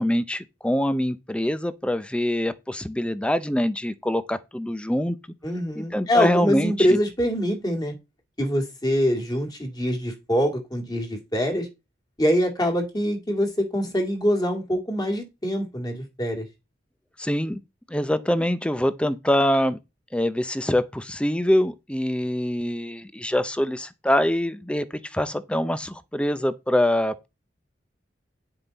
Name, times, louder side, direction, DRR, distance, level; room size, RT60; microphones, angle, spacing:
voice 1, 0.0-5.2 5.8-7.0 17.2-17.6 17.9-19.8 20.1-27.3, left 1 dB, 5° left, 0.6 m, -24 dB
voice 2, 5.4-7.9 8.4-11.7 12.2-16.5, equal, 20° left, 2.2 m, -24 dB
9.8 x 5.6 x 4.0 m
head